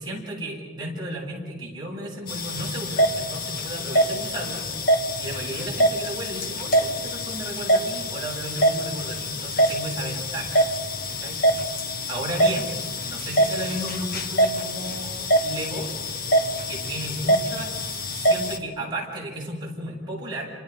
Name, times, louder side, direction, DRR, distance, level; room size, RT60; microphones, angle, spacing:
voice 1, 0.0-4.6 5.2-10.6 11.2-11.4 12.1-12.7 13.0-15.1 15.4-15.9 16.7-20.5, right 1 dB, 20° right, -4 dB, 7.6 m, -34 dB
sound 1, 2.3-18.6, right 1 dB, 45° left, 1.6 m, -25 dB
30.0 x 27.5 x 5.3 m, 1.4 s
head